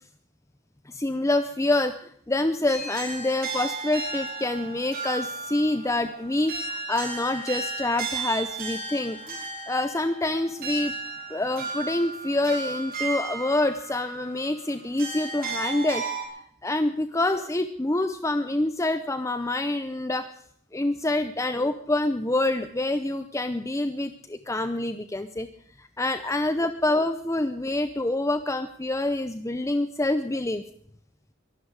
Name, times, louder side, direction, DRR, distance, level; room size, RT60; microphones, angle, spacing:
voice 1, 0.9-10.9 11.3-16.0 16.6-20.3 20.7-25.5 25.8-30.6, left 2 dB, 15° left, 10 dB, 0.6 m, -26 dB
sound 1, 2.7-16.2, right 3 dB, 45° right, 5.4 m, -34 dB
23.0 x 12.0 x 4.8 m, 0.65 s
head